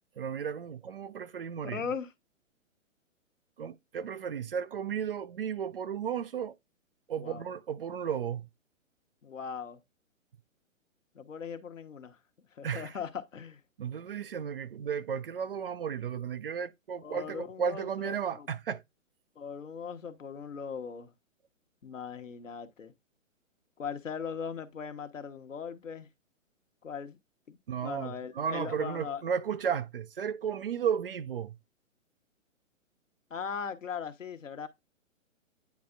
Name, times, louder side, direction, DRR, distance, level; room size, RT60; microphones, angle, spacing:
voice 1, 0.2-1.8 3.6-6.6 7.1-8.5 12.6-12.9 13.8-18.8 27.7-31.6, right 7 dB, 45° right, 0.4 m, -34 dB
voice 2, 1.7-2.1 7.2-7.4 9.2-9.8 11.1-12.2 12.5-13.6 17.0-18.5 19.4-21.1 21.8-22.9 23.8-26.1 26.8-27.2 27.5-29.2 33.3-34.7, left 6 dB, 70° left, 1.1 m, -39 dB
9.4 x 4.2 x 2.4 m
figure-of-eight pair, 125°, 40 cm